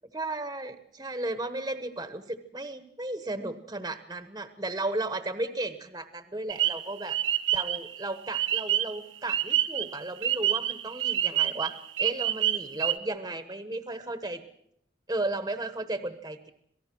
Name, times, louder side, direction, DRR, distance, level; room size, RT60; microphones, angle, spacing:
voice 1, 0.1-7.2 7.5-14.4 15.1-16.5, right 2 dB, 20° right, 9 dB, 1.1 m, -34 dB
sound 1, 6.5-9.0 9.3-13.0, right 12 dB, 80° right, 1.0 m, -27 dB
26.5 x 18.0 x 6.1 m, 0.72 s
head